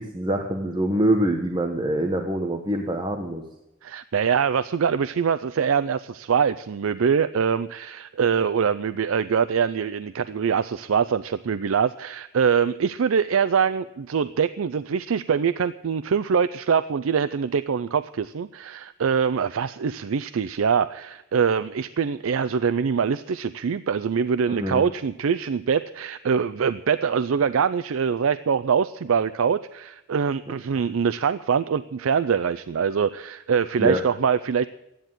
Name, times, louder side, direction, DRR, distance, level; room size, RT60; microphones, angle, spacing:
voice 1, 0.0-3.4 24.5-24.8 30.7-30.9 33.8-34.0, right 1 dB, 20° right, 3 dB, 1.1 m, -25 dB
voice 2, 3.8-34.7, right 6 dB, 85° right, 13 dB, 0.4 m, -24 dB
13.0 x 10.0 x 9.1 m, 0.91 s
head